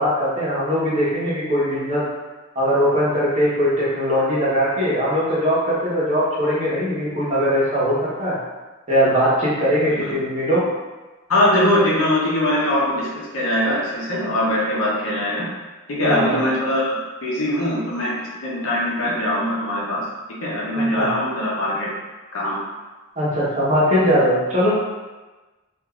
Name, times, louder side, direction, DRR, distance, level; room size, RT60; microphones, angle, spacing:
voice 1, 0.0-2.0 2.5-8.4 8.9-10.6 16.0-16.4 20.7-21.1 23.2-24.7, equal, 35° right, -8 dB, 1.1 m, -20 dB
voice 2, 11.3-15.4 15.9-16.9 17.2-20.0 20.4-21.9 22.3-22.6, left 1 dB, 70° left, -5 dB, 0.8 m, -21 dB
3.4 x 2.6 x 2.4 m, 1.2 s
head